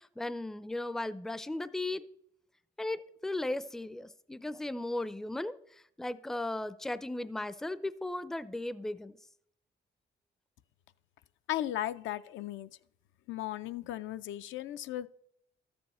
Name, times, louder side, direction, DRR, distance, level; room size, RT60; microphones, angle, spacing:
voice 1, 0.0-2.0 2.8-5.6 6.0-9.2, left 2 dB, ahead, 0.4 m, -36 dB
voice 2, 11.5-12.7 13.3-15.1, left 13 dB, 75° left, 0.4 m, -36 dB
13.0 x 7.1 x 4.2 m
cardioid pair, 90°, 20 cm